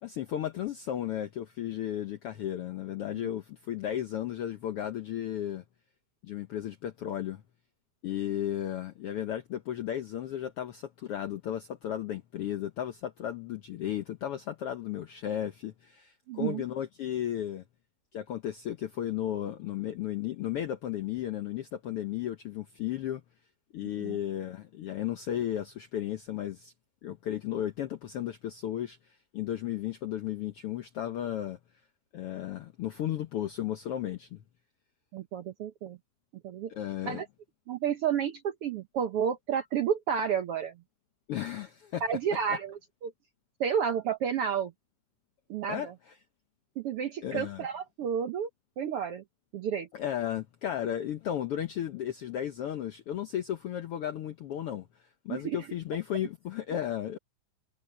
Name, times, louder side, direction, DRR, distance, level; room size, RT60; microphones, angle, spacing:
voice 1, 0.0-5.6 6.2-7.4 8.0-17.6 18.1-23.2 23.7-26.7 27.0-31.6 32.1-34.4 36.7-37.2 41.3-42.0 42.5-42.6 45.7-45.9 47.2-47.7 49.9-57.2, left 11 dB, 75° left, 1.3 m, -34 dB
voice 2, 16.3-16.6 24.0-24.2 35.1-36.0 36.4-36.7 37.0-37.3 37.7-40.8 42.0-43.1 43.6-44.7 45.5-45.9 46.8-48.5 48.8-49.2 49.5-49.9 55.3-55.6, right 8 dB, 70° right, 1.4 m, -31 dB
omnidirectional pair, 3.7 m